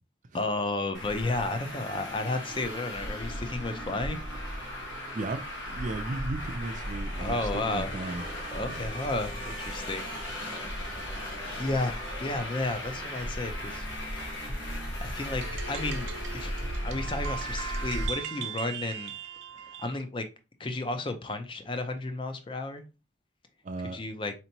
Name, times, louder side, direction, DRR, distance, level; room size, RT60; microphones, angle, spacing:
voice 1, 0.3-4.2 7.2-8.2 8.5-10.0 11.1-11.2 11.6-13.9 14.2-14.6 15.0-16.5 16.8-19.1 19.8-20.3 20.6-22.8 23.9-24.3, left 2 dB, 25° left, 0.4 m, -32 dB
Traffic noise roadway noise, 0.9-18.1, equal, 80° left, 1.2 m, -36 dB
voice 2, 5.1-8.2 8.6-8.9 23.6-24.0, right 2 dB, 40° right, 0.4 m, -35 dB
sound 1, 15.2-20.0, right 7 dB, 85° right, 0.6 m, -39 dB
4.3 x 2.9 x 2.7 m
head